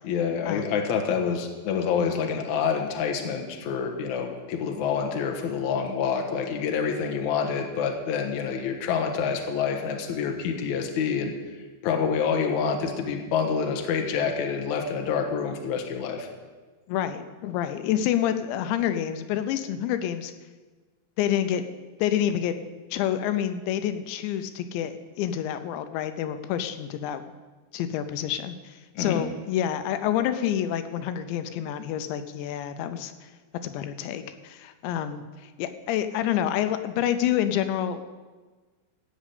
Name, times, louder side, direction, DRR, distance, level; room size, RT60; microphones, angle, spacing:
voice 1, 0.0-11.3 11.8-16.3 29.0-29.2, left 6 dB, 60° left, 3 dB, 2.0 m, -27 dB
voice 2, 16.9-20.3 21.2-21.7 22.0-22.6 22.9-27.2 27.7-33.3 33.6-38.0, left 10 dB, 85° left, 10 dB, 3.0 m, -28 dB
15.5 x 6.2 x 8.4 m, 1.3 s
omnidirectional pair, 5.1 m